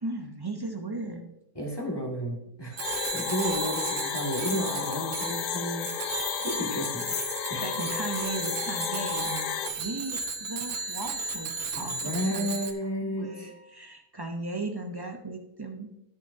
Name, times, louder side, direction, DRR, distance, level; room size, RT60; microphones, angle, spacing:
voice 1, 0.0-1.2 7.6-12.6 13.0-15.9, right 2 dB, 40° right, 4 dB, 0.3 m, -36 dB
voice 2, 1.6-2.8 3.1-7.1 7.5-7.7 11.7-13.5, equal, 15° left, -1 dB, 1.9 m, -32 dB
Bicycle bell, 2.7-12.7, right 5 dB, 85° right, 1.6 m, -35 dB
sound 1, 2.8-9.7, left 8 dB, 70° left, 1.3 m, -32 dB
sound 2, 10.7-13.9, equal, 55° right, 2.1 m, -56 dB
13.0 x 8.2 x 2.7 m, 0.84 s
omnidirectional pair, 1.8 m